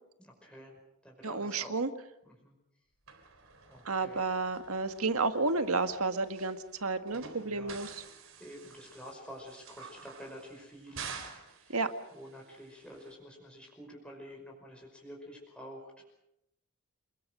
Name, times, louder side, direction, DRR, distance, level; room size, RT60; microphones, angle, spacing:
voice 1, 0.2-0.7 1.0-1.8 2.2-2.5 3.7-4.2 7.4-7.8 8.4-11.2 11.6-11.8 12.1-16.0, equal, 5° left, -1 dB, 5.2 m, -49 dB
voice 2, 1.2-1.9 3.9-7.9 11.7-11.9, right 3 dB, 80° right, 8 dB, 1.8 m, -31 dB
sound 1, 3.1-13.1, right 6 dB, 60° right, 4.0 m, -50 dB
28.5 x 21.0 x 6.4 m, 0.83 s
head